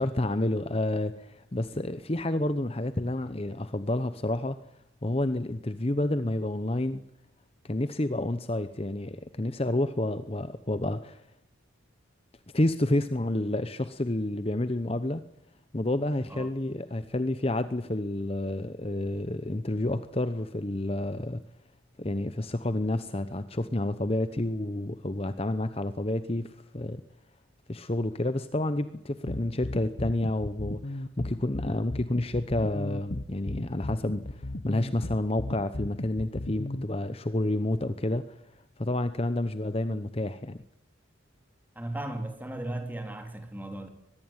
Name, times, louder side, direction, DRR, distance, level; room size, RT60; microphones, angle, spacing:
voice 1, 0.0-4.6 5.0-7.0 7.6-11.2 12.5-15.2 15.7-21.4 22.0-27.0 27.7-38.4 38.8-40.6, left 1 dB, 30° left, 0.9 m, -29 dB
sound 1, 29.3-36.8, left 1 dB, 50° left, 1.1 m, -35 dB
voice 2, 41.8-43.9, right 1 dB, 10° right, 3.3 m, -36 dB
23.5 x 21.0 x 9.0 m
head